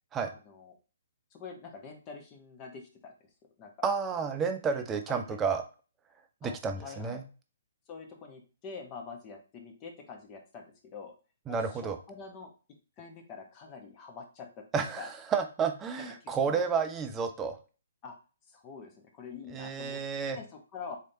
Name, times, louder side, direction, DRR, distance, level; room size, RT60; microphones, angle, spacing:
voice 1, 0.2-0.7 1.3-3.1 3.6-3.7 4.1-4.2 4.7-4.8 5.1-5.4 6.4-6.5 6.8-7.2 7.9-11.1 11.5-12.5 13.0-15.1 16.0-16.7 18.0-18.2 18.5-20.0 20.3-21.0, left 5 dB, 25° left, 3 dB, 1.1 m, -46 dB
voice 2, 3.8-5.6 6.4-7.2 11.5-12.0 14.7-17.6 19.5-20.4, right 6 dB, 15° right, 6 dB, 0.6 m, -31 dB
4.1 x 3.1 x 2.8 m, 0.34 s
figure-of-eight pair, 130°, 0 cm